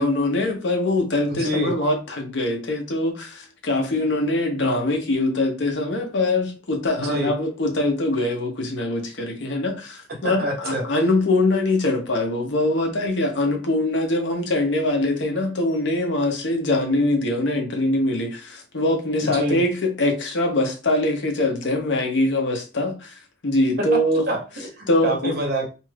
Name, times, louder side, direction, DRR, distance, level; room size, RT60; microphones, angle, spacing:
voice 1, 0.0-23.1 23.4-24.2 24.9-25.3, left 2 dB, 80° left, 0.8 m, -23 dB
voice 2, 1.3-1.7 7.0-7.3 10.2-10.8 19.2-19.6 23.9-24.0 24.3-25.7, right 1 dB, 55° right, 0.9 m, -26 dB
2.5 x 2.3 x 3.3 m
head